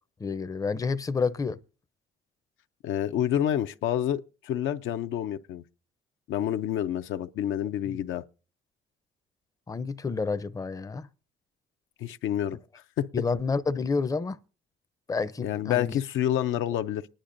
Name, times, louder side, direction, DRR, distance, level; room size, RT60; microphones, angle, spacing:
voice 1, 0.2-1.6 7.9-8.0 9.7-11.1 13.1-14.4 15.1-16.0, left 4 dB, 15° left, 0.5 m, -29 dB
voice 2, 2.8-5.6 6.3-8.2 12.0-12.6 13.0-13.1 15.4-17.1, left 11 dB, 80° left, 0.5 m, -28 dB
25.5 x 10.0 x 2.6 m
cardioid pair, 90°, 20 cm